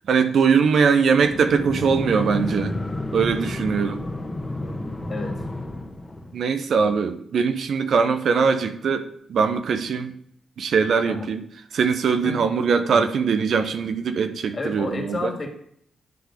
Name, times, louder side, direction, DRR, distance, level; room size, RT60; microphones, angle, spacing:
voice 1, 0.1-2.8 3.1-4.0 6.3-10.1 10.6-11.4 11.7-15.3, right 5 dB, 65° right, 8 dB, 0.7 m, -21 dB
sound 1, 1.2-6.4, left 1 dB, 20° left, 1.3 m, -30 dB
voice 2, 5.1-5.4 11.1-11.3 12.2-12.5 12.9-13.0 14.5-15.5, left 2 dB, 45° left, 0 dB, 2.6 m, -31 dB
11.0 x 3.8 x 5.0 m, 0.68 s
supercardioid pair, 50°, 0 cm